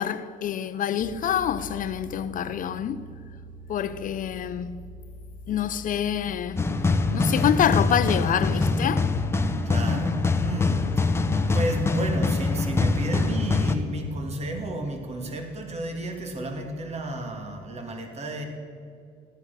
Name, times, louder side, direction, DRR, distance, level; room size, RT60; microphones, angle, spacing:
voice 1, 0.0-3.1 3.7-4.8 5.5-6.6 7.1-9.1, left 9 dB, 50° left, 0.6 m, -26 dB
sound 1, 1.0-17.7, equal, 10° right, 3.3 m, -46 dB
sound 2, 6.6-13.7, left 3 dB, 15° left, 1.0 m, -24 dB
voice 2, 9.7-11.1 11.5-18.5, right 1 dB, 40° right, 2.2 m, -32 dB
16.0 x 11.5 x 6.6 m
cardioid pair, 110°, 17 cm